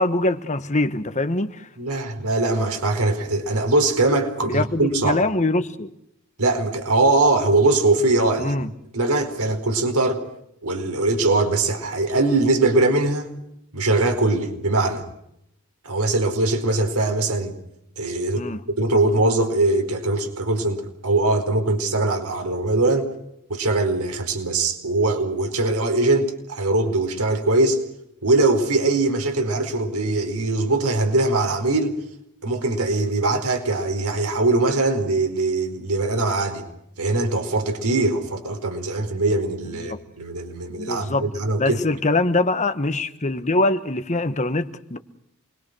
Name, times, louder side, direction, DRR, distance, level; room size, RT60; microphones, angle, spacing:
voice 1, 0.0-1.7 4.4-5.9 8.4-8.7 18.4-18.6 39.7-40.0 40.7-41.3 41.6-45.0, left 2 dB, 35° left, 1.4 m, -23 dB
voice 2, 1.8-5.2 6.4-8.5 8.9-10.2 10.6-13.3 13.7-15.0 15.8-17.5 18.0-23.1 23.5-27.8 28.2-31.9 32.4-36.7 37.0-41.8, right 2 dB, 90° right, 4.7 m, -21 dB
28.0 x 22.0 x 6.3 m
head